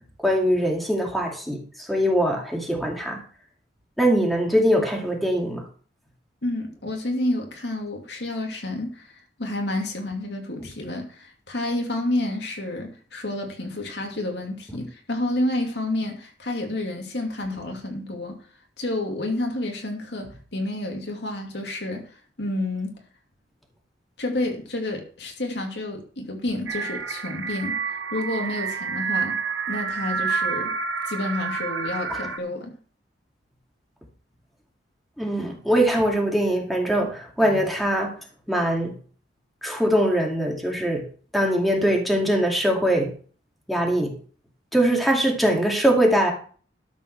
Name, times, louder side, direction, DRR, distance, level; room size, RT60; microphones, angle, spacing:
voice 1, 0.2-1.6 1.9-3.2 4.0-5.6 32.1-32.2 35.2-38.1 38.5-38.9 39.6-41.0 41.3-43.1 43.7-44.1 44.7-46.3, equal, ahead, 0 dB, 2.4 m, -22 dB
voice 2, 6.4-18.4 18.8-22.1 22.4-22.9 24.2-29.4 29.7-30.7 31.0-32.7, left 1 dB, 65° left, 2 dB, 2.5 m, -29 dB
sound 1, 26.7-32.4, right 5 dB, 85° right, 1.2 m, -28 dB
12.5 x 5.5 x 6.6 m, 0.42 s
head